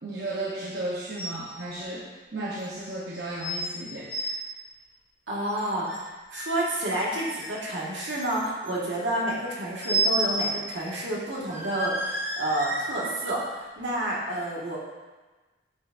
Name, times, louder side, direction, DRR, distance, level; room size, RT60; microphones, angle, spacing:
voice 1, 0.0-4.4, right 2 dB, 60° right, -6 dB, 1.0 m, -34 dB
sound 1, 1.2-1.5 1.8-1.9 2.6-2.7 3.4-3.7 4.0-4.4 5.5-6.0 6.3-7.6 8.1-8.7 9.8-10.6 10.9-11.0 11.5-13.3 13.9-14.0, right 1 dB, 15° right, 1.4 m, -31 dB
voice 2, 5.3-6.0 6.3-14.8, right 1 dB, 90° right, -5 dB, 1.8 m, -29 dB
8.4 x 5.8 x 2.6 m, 1.2 s
head